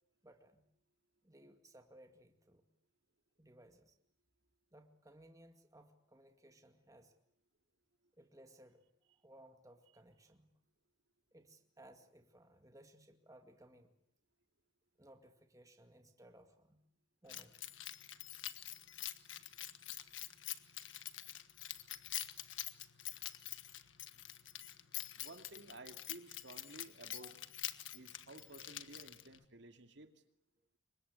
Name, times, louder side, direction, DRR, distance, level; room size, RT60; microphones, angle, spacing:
voice 1, 0.2-0.6 1.2-2.6 3.4-3.9 4.7-7.2 8.2-8.8 9.2-10.5 11.3-13.9 15.0-16.8 17.2-17.6 27.2-27.3, right 1 dB, 15° right, 6 dB, 2.1 m, -61 dB
Keys jangling, 17.3-29.4, left 13 dB, 70° left, 1.5 m, -46 dB
voice 2, 25.2-27.4 27.9-30.1, right 2 dB, 60° right, 7 dB, 2.5 m, -54 dB
29.0 x 24.5 x 8.3 m, 0.69 s
head